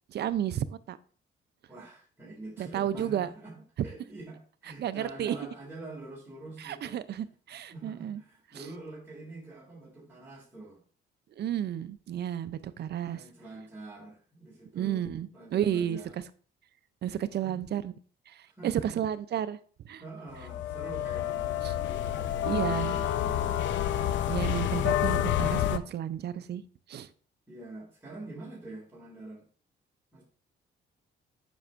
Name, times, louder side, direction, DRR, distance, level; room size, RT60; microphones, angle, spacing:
voice 1, 0.1-1.0 2.6-3.3 4.8-5.4 6.6-8.2 8.5-8.7 11.4-13.2 14.7-16.2 17.0-17.9 18.3-19.6 19.8-20.0 21.6-21.7 22.5-23.0 24.3-26.6 26.9-27.1, right 10 dB, 55° right, 14 dB, 0.5 m, -32 dB
voice 2, 1.7-3.5 3.8-7.0 7.7-10.8 13.0-15.0 15.3-16.2 17.4-17.6 18.5-19.0 20.0-23.7 27.5-29.4 30.1-30.2, right 2 dB, 10° right, -6 dB, 2.3 m, -45 dB
sound 1, 20.3-25.8, left 11 dB, 70° left, 0.5 m, -29 dB
7.9 x 6.0 x 2.5 m, 0.43 s
cardioid pair, 90°, 20 cm